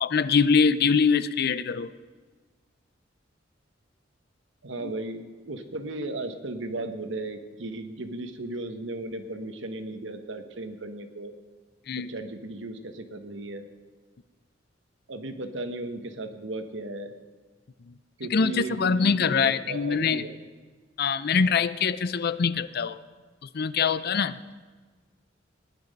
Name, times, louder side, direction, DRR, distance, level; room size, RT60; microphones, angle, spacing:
voice 1, 0.0-1.9 4.8-4.9 11.9-12.1 17.9-18.0 18.3-20.3 21.0-23.0 23.5-24.4, left 5 dB, 55° left, 15 dB, 0.5 m, -24 dB
voice 2, 4.6-11.3 12.1-13.7 15.1-17.1 18.2-20.4, right 2 dB, 70° right, 7 dB, 1.3 m, -36 dB
17.5 x 10.5 x 5.3 m, 1.4 s
head